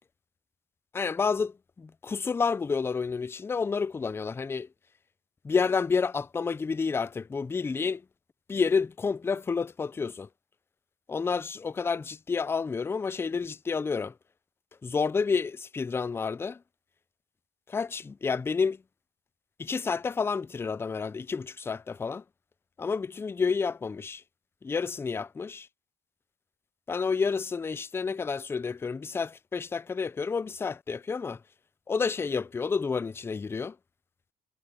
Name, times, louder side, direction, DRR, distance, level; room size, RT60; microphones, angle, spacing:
voice 1, 0.9-4.7 5.4-8.0 8.5-10.3 11.1-14.1 14.8-16.6 17.7-18.8 19.6-22.2 22.8-24.2 24.6-25.7 26.9-31.4 31.9-33.8, left 5 dB, 15° left, 0.3 m, -29 dB
cardioid pair, 130°, 15 cm